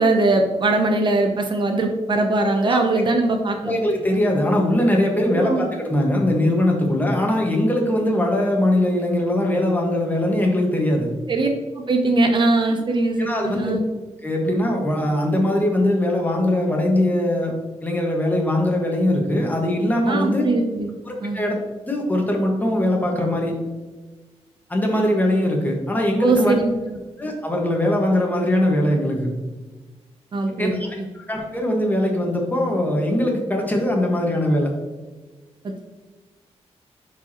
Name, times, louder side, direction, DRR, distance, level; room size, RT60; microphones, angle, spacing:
voice 1, 0.0-3.8 5.3-5.6 11.3-11.5 11.8-13.8 20.1-20.9 21.2-21.4 26.2-26.7 30.3-30.8 35.6-35.8, right 2 dB, 45° right, 4 dB, 0.7 m, -21 dB
voice 2, 2.6-3.0 3.6-11.1 13.2-13.8 14.2-17.5 17.8-20.5 21.0-21.6 21.8-23.5 24.7-26.6 27.2-29.3 30.6-30.9 31.1-34.7, left 1 dB, 15° left, 0 dB, 1.5 m, -21 dB
10.5 x 4.8 x 3.0 m, 1.2 s
wide cardioid pair, 145°, 11 cm